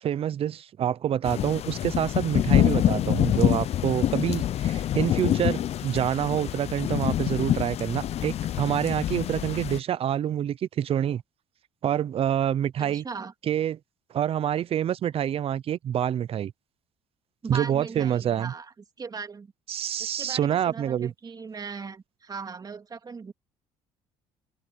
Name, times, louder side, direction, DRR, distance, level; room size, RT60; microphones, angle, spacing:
voice 1, 0.0-11.2 11.8-13.0 13.5-13.8 14.1-16.5 17.5-18.5 19.7-21.1, right 10 dB, 50° right, 0.7 m, -27 dB
sound 1, 1.2-9.8, left 11 dB, 55° left, 0.8 m, -26 dB
voice 2, 12.8-13.3 17.4-19.5 20.0-23.3, right 5 dB, 30° right, 3.2 m, -39 dB
cardioid pair, 90°, 13 cm